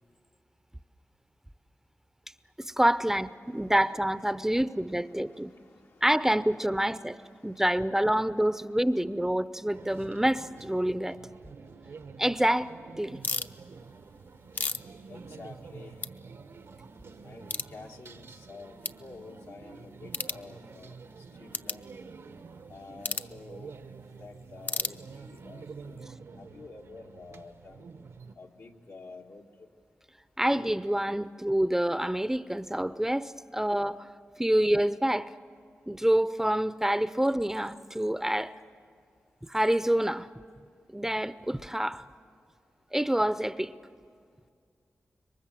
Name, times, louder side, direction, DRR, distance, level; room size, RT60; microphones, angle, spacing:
voice 1, 2.6-5.5 6.0-7.2 7.4-11.2 12.2-12.7 13.0-13.2 30.4-34.1 34.4-35.3 35.9-38.5 39.4-40.3 40.9-42.0 42.9-43.7, right 1 dB, 10° right, 0.6 m, -27 dB
voice 2, 3.4-3.7 4.3-4.7 5.1-6.1 7.2-7.6 15.1-16.0 17.2-21.0 21.4-21.8 22.7-23.7 24.2-27.9 28.3-29.7, left 3 dB, 80° left, 1.7 m, -49 dB
sound 1, 9.7-28.3, right 4 dB, 80° right, 1.1 m, -48 dB
sound 2, 13.2-13.5 14.2-15.7 16.0-16.1 16.6-16.7 17.5-17.7 18.3-18.4 18.8-19.0 20.1-20.4 21.5-21.8 23.0-23.3 24.6-25.4, left 3 dB, 40° left, 0.7 m, -33 dB
26.5 x 23.0 x 7.6 m
cardioid pair, 60°, 5 cm